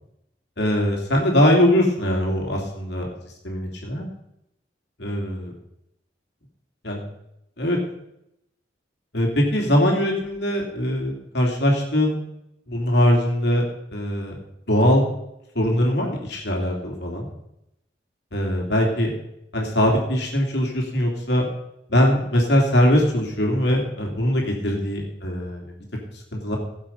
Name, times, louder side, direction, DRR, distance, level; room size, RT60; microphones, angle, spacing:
voice 1, 0.6-3.1 3.4-4.1 5.0-5.5 6.8-7.0 7.6-7.8 9.1-12.2 12.7-13.6 13.9-14.4 14.7-15.1 15.5-17.3 18.3-19.1 19.5-21.5 21.9-25.6 26.3-26.6, equal, 65° left, 0 dB, 2.9 m, -21 dB
17.0 x 7.4 x 5.4 m, 0.82 s
head